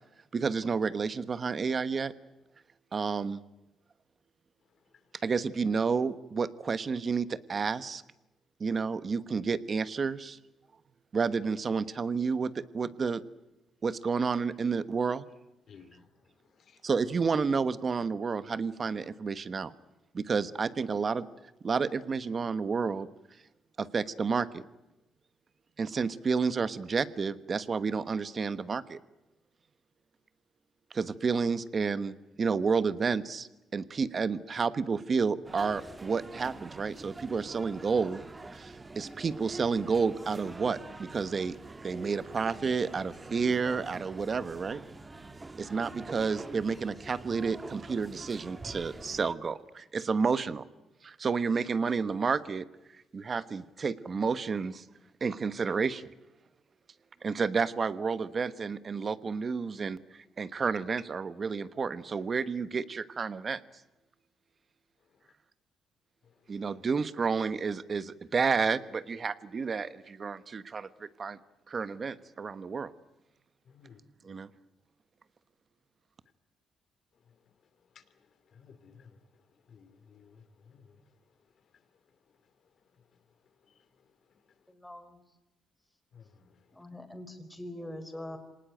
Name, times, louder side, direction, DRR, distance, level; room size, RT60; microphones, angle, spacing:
voice 1, 0.3-2.1 2.9-3.4 5.2-8.0 8.6-10.4 11.1-13.2 13.8-15.3 16.8-19.7 20.1-21.3 21.6-23.1 23.8-24.6 25.8-29.0 30.9-38.2 38.5-41.6 41.8-44.8 45.6-50.6 51.0-52.6 52.9-54.8 55.2-56.0 57.2-63.6 66.5-71.4 71.7-72.9 74.2-74.5, right 5 dB, 40° right, 14 dB, 1.2 m, -30 dB
voice 2, 4.6-5.2 15.7-16.9 65.0-65.3 66.2-66.6 73.6-74.0 74.3-74.4 77.1-84.7 86.1-86.8, left 6 dB, 55° left, 11 dB, 2.7 m, -60 dB
sound 1, 35.4-49.3, right 3 dB, 20° right, 1.4 m, -46 dB
voice 3, 84.7-85.2 86.7-88.4, left 1 dB, 10° left, 7 dB, 4.2 m, -43 dB
26.0 x 19.0 x 9.1 m, 0.99 s
cardioid pair, 90°, 0 cm